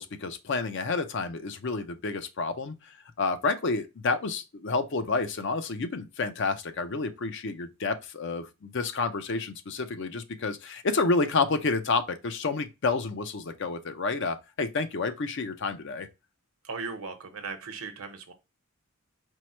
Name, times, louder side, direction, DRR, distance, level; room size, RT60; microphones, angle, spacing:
voice 1, 0.0-16.1, left 3 dB, 55° left, 0.5 m, -29 dB
voice 2, 16.6-18.3, right 4 dB, 75° right, 0.9 m, -37 dB
4.5 x 2.1 x 4.3 m
head